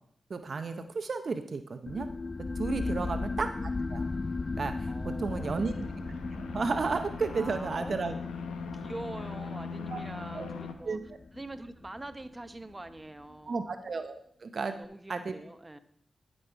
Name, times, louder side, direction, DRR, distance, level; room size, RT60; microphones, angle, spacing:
voice 1, 0.3-2.1 2.6-4.0 4.6-5.7 6.3-8.1 9.9-10.0 10.3-10.5 10.9-11.0 13.5-14.7 15.1-15.3, right 4 dB, 60° right, 8 dB, 0.6 m, -33 dB
sound 1, 1.9-13.0, left 3 dB, 40° left, 0.4 m, -37 dB
voice 2, 2.8-3.2 4.9-5.6 7.3-8.3 8.6-11.0 11.3-13.7 14.7-15.8, right 2 dB, 25° right, 9 dB, 0.9 m, -44 dB
sound 2, 5.4-10.7, left 5 dB, 90° left, 0.7 m, -41 dB
12.0 x 5.5 x 4.6 m, 0.65 s
supercardioid pair, 40°, 0 cm